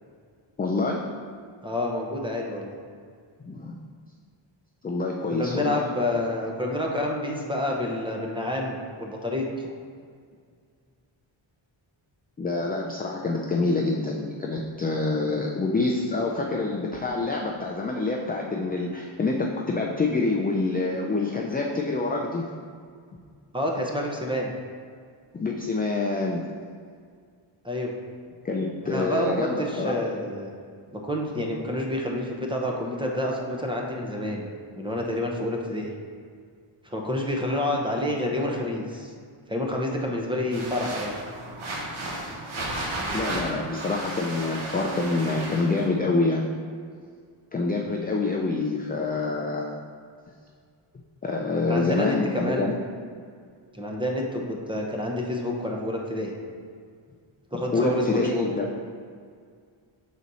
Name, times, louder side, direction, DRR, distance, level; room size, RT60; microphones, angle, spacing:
voice 1, 0.6-1.0 3.4-3.7 4.8-5.9 12.4-22.4 25.3-26.4 28.4-29.9 43.1-46.5 47.5-49.8 51.2-52.8 57.7-58.7, left 3 dB, 20° left, -1 dB, 0.4 m, -26 dB
voice 2, 1.6-2.7 5.3-9.4 23.5-24.5 27.6-27.9 28.8-30.5 30.9-35.9 36.8-39.1 39.5-41.1 51.6-52.7 53.7-56.3 57.5-58.5, left 1 dB, 10° right, 0 dB, 0.8 m, -28 dB
sound 1, 40.5-45.9, right 1 dB, 75° right, 1.4 m, -33 dB
6.3 x 4.1 x 4.1 m, 2.1 s
wide cardioid pair, 110°, 49 cm